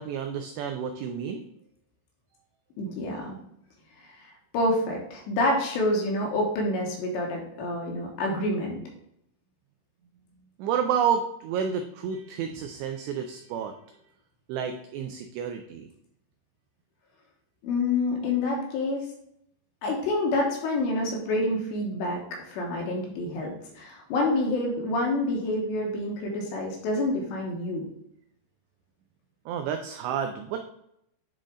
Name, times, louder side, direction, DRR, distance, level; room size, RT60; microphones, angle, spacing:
voice 1, 0.0-1.4 10.6-13.7 14.5-15.9 29.5-30.6, right 7 dB, 85° right, 6 dB, 2.5 m, -30 dB
voice 2, 2.8-3.4 4.1-8.8 12.4-12.5 17.6-19.1 19.8-22.2 22.5-27.9, left 2 dB, 75° left, 0 dB, 3.0 m, -28 dB
10.0 x 3.8 x 3.7 m, 0.76 s
omnidirectional pair, 5.5 m